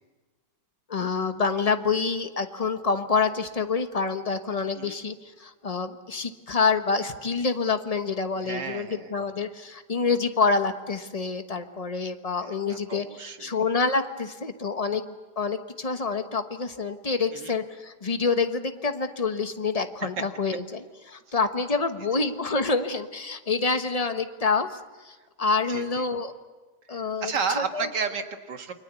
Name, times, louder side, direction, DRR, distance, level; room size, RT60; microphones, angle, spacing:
voice 1, 0.9-15.1 15.4-24.8 25.0-26.3 26.9-27.9, left 4 dB, 25° left, 8 dB, 1.1 m, -27 dB
voice 2, 8.4-9.1 12.4-13.6 17.3-17.5 25.7-26.1 26.9-28.7, right 5 dB, 85° right, 6 dB, 2.3 m, -32 dB
29.0 x 23.0 x 8.3 m, 1.3 s
omnidirectional pair, 1.8 m